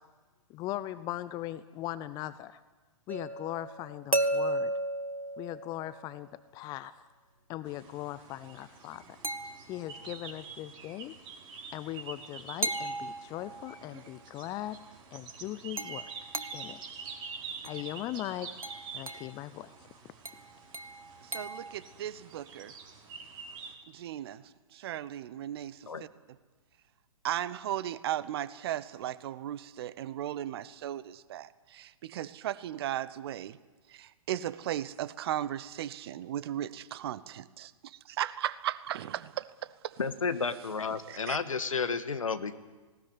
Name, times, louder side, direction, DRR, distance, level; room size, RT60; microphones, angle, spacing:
voice 1, 0.5-2.6 3.1-4.7 5.4-7.0 7.5-9.2 9.7-11.1 11.7-14.8 15.1-16.1 16.5-17.0 17.6-18.5 18.9-19.9, left 14 dB, 25° left, 16 dB, 0.6 m, -39 dB
sound 1, 3.1-6.2 9.2-10.1 12.6-13.8 15.8-16.8 17.6-17.9 18.6-19.4 20.2-21.7, right 2 dB, 90° right, 1.4 m, -35 dB
sound 2, 7.6-23.7, right 5 dB, 25° right, 4.3 m, -47 dB
voice 2, 21.2-22.7 23.9-26.1 27.2-33.6 33.9-40.0 41.1-41.4, right 12 dB, 45° right, 17 dB, 1.0 m, -36 dB
voice 3, 40.0-42.5, left 5 dB, 75° left, 11 dB, 1.6 m, -32 dB
19.0 x 18.0 x 9.8 m, 1.3 s
figure-of-eight pair, 115°, 17 cm